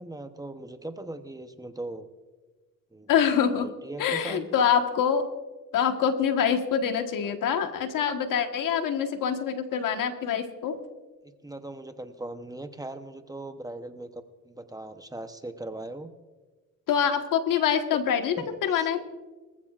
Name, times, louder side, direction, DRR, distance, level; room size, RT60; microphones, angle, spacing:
voice 1, 0.0-2.1 2.9-3.1 3.5-4.5 11.2-16.1 18.4-18.9, right 2 dB, 10° right, 8 dB, 0.8 m, -39 dB
voice 2, 3.1-3.7 4.0-5.2 5.7-10.8 16.9-19.0, left 8 dB, 75° left, 6 dB, 1.4 m, -25 dB
24.0 x 14.5 x 2.5 m, 1.3 s
cardioid pair, 105°, 33 cm